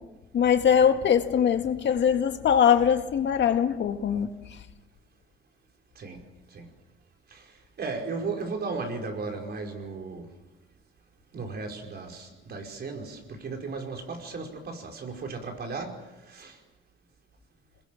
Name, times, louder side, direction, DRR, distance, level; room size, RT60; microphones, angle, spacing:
voice 1, 0.3-4.3, left 8 dB, 65° left, 2.0 m, -22 dB
voice 2, 7.8-10.3 11.3-16.0 16.3-16.6, right 4 dB, 55° right, 5.1 m, -35 dB
27.0 x 21.0 x 7.6 m
cardioid pair, 90°, 20 cm